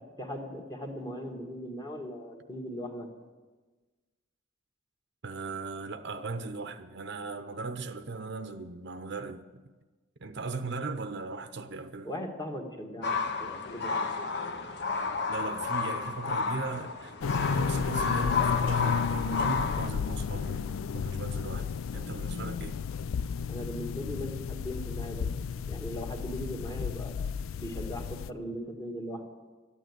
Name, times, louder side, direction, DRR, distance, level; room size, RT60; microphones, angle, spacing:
voice 1, 0.2-3.1 12.0-14.1 23.5-25.3 25.7-27.3 27.6-29.3, equal, 20° left, 1.6 m, -39 dB
voice 2, 5.2-9.5 10.2-12.1 15.3-22.8, right 3 dB, 55° right, 0.7 m, -38 dB
sound 1, 13.0-19.9, left 5 dB, 55° left, 0.9 m, -31 dB
sound 2, 17.2-28.3, left 6 dB, 80° left, 0.4 m, -33 dB
13.0 x 9.1 x 9.4 m
head